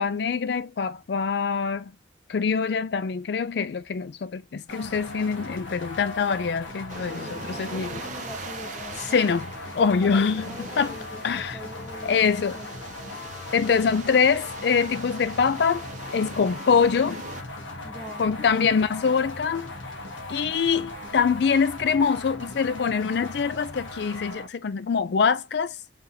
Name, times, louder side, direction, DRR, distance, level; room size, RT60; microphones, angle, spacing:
voice 1, 0.0-1.9 2.3-8.0 9.0-9.5 9.7-11.0 11.2-11.6 12.0-12.6 13.5-15.9 16.1-17.2 18.2-19.7 20.3-25.8, left 6 dB, 60° left, 0.4 m, -24 dB
sound 1, 4.7-24.5, left 2 dB, 85° left, 1.3 m, -39 dB
sound 2, 6.9-17.4, right 4 dB, 40° right, 0.5 m, -42 dB
voice 2, 7.1-9.3 9.8-12.7 17.8-18.5, equal, 10° left, 0.5 m, -43 dB
Singing, 7.9-22.6, left 2 dB, 45° left, 1.1 m, -49 dB
3.5 x 2.8 x 3.8 m
head